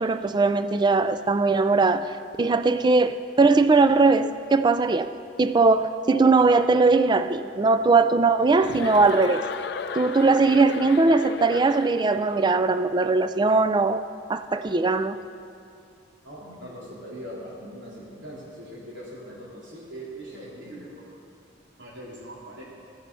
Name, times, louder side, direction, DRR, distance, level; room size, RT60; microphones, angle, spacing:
voice 1, 0.0-2.1 2.4-5.1 5.4-9.5 10.0-14.0 14.3-15.2, right 3 dB, 25° right, 11 dB, 0.3 m, -20 dB
Chuckle chortle, 8.5-12.3, left 5 dB, 55° left, 0.4 m, -35 dB
voice 2, 16.2-21.1 21.8-22.6, equal, 75° right, -6 dB, 3.5 m, -41 dB
14.5 x 7.4 x 5.4 m, 2.4 s
head